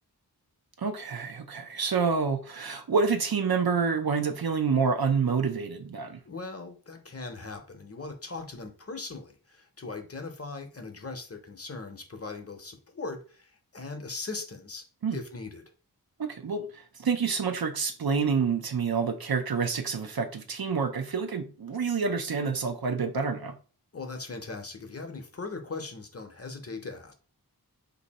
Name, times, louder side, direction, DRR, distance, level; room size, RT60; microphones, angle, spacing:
voice 1, 0.8-6.2 15.0-15.2 16.2-23.5, right 5 dB, 70° right, 0.6 m, -28 dB
voice 2, 6.3-14.8 15.1-15.7 23.9-27.1, left 3 dB, 40° left, 0.7 m, -39 dB
2.7 x 2.6 x 4.0 m
wide cardioid pair, 70°, 38 cm